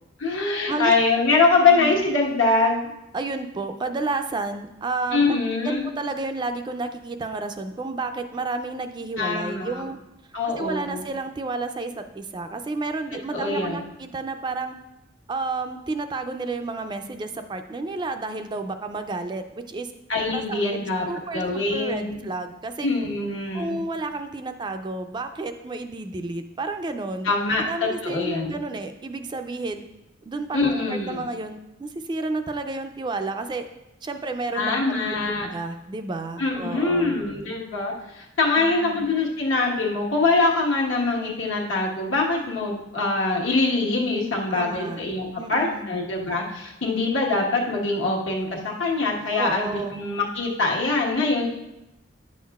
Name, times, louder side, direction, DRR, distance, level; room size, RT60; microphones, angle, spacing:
voice 1, 0.2-2.9 5.1-5.9 9.2-9.8 10.3-11.1 13.3-13.9 20.1-21.0 21.3-22.3 22.8-23.8 27.2-28.6 30.5-31.3 34.5-35.5 36.4-51.4, left 3 dB, 80° left, -2 dB, 1.3 m, -23 dB
voice 2, 3.1-5.4 5.6-10.0 10.6-14.8 15.3-19.9 20.3-22.9 23.5-27.3 27.6-29.8 30.3-33.7 34.0-37.2 38.6-39.1 44.5-45.0 45.4-45.9 49.4-50.0, right 3 dB, 25° right, 7 dB, 0.3 m, -31 dB
9.6 x 6.4 x 2.3 m, 0.92 s
head